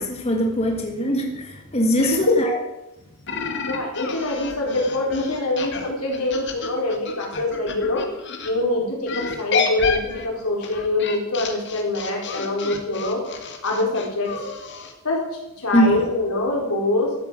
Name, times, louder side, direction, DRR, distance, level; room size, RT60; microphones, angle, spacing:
voice 1, 0.0-2.6 15.7-16.0, equal, 30° left, 2 dB, 1.6 m, -21 dB
voice 2, 2.0-2.3 3.4-8.1 8.4-13.2 13.6-14.3 15.0-15.2 15.6-17.3, left 2 dB, 85° left, -1 dB, 4.7 m, -24 dB
sound 1, 3.3-8.5 9.1-14.9, left 5 dB, 55° left, 1.9 m, -30 dB
13.5 x 8.2 x 7.7 m, 0.94 s
head